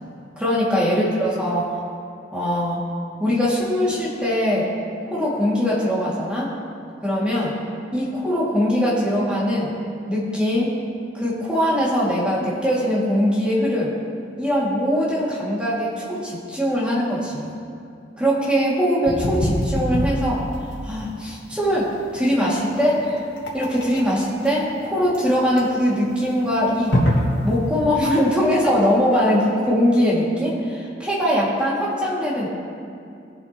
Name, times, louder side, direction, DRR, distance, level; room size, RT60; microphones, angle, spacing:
voice 1, 0.4-1.7 2.3-2.8 3.2-4.7 5.1-6.5 7.0-7.5 7.9-9.7 10.1-10.7 11.1-13.9 14.4-17.5 18.2-20.4 20.8-23.3 23.5-26.9 27.4-32.5, equal, 5° right, -7 dB, 2.4 m, -21 dB
sound 1, 19.1-27.8, equal, 75° left, 2.0 m, -25 dB
19.5 x 7.4 x 3.1 m, 2.4 s
head